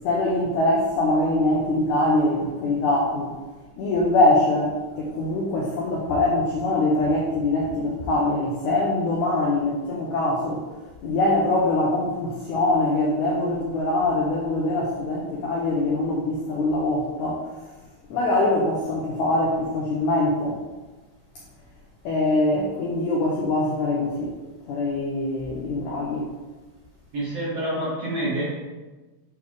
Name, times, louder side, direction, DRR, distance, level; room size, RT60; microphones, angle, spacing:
voice 1, 0.0-3.3 3.8-10.7 11.0-17.5 18.1-20.6 22.0-24.3 24.7-26.3, left 2 dB, 85° left, -3 dB, 1.7 m, -23 dB
voice 2, 27.1-28.4, right 1 dB, 65° right, -7 dB, 1.6 m, -27 dB
8.1 x 3.5 x 3.4 m, 1.2 s
omnidirectional pair, 4.4 m